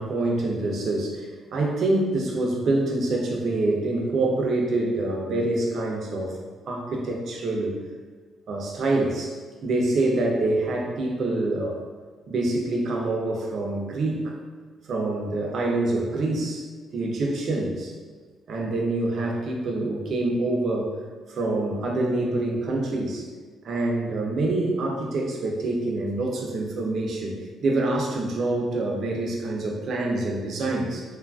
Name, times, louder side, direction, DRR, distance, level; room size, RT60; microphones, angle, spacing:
voice 1, 0.0-6.4 6.7-7.8 8.5-9.4 9.6-11.8 12.3-14.3 14.9-17.9 18.5-20.9 21.3-23.3 23.6-31.0, right 2 dB, 60° right, 0 dB, 0.5 m, -26 dB
3.0 x 2.4 x 2.2 m, 1.5 s
cardioid pair, 90°, 0 cm